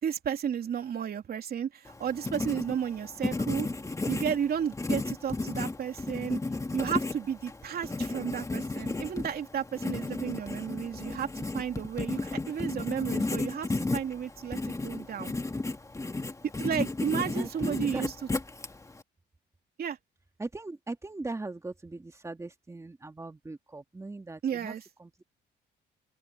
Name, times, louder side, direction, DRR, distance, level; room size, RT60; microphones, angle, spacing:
voice 1, 0.0-3.7 4.1-6.4 6.7-11.3 11.5-15.3 16.6-18.1 19.8-20.0 24.4-24.9, right 8 dB, 60° right, 3.2 m, -33 dB
Writing, 1.9-19.0, left 3 dB, 15° left, 2.1 m, -33 dB
voice 2, 17.1-18.0 20.4-24.7 25.0-25.2, right 2 dB, 15° right, 1.9 m, -39 dB
open air
cardioid pair, 95°, 18 cm